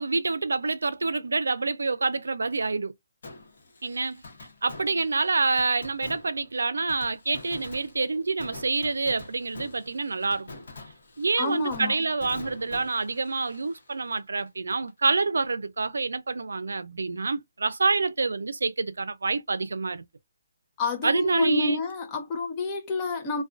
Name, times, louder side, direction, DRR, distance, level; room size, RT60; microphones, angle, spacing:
voice 1, 0.0-2.9 3.8-4.2 4.6-10.6 11.2-20.1 21.0-21.8, right 3 dB, 90° right, 0.4 m, -27 dB
Fireworks, 3.2-14.9 15.2-15.3 21.9-22.0, left 2 dB, 55° left, 0.9 m, -46 dB
voice 2, 11.4-12.0 20.8-23.4, left 4 dB, 20° left, 0.5 m, -29 dB
2.3 x 2.2 x 2.4 m
hypercardioid pair, 165°, 0 cm